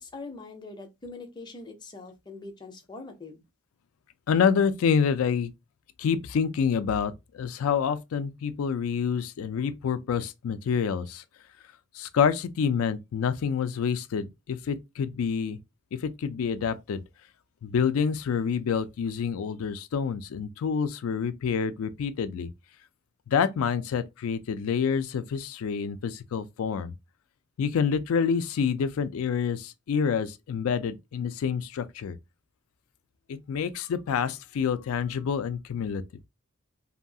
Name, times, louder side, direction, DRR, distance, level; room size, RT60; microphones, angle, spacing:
voice 1, 0.0-3.4, left 3 dB, 20° left, 0.5 m, -43 dB
voice 2, 4.3-5.5 6.0-11.2 11.9-15.6 15.9-17.0 17.6-22.5 23.3-26.9 27.6-32.2 33.3-36.0, left 6 dB, 70° left, 0.3 m, -27 dB
2.7 x 2.3 x 2.6 m
head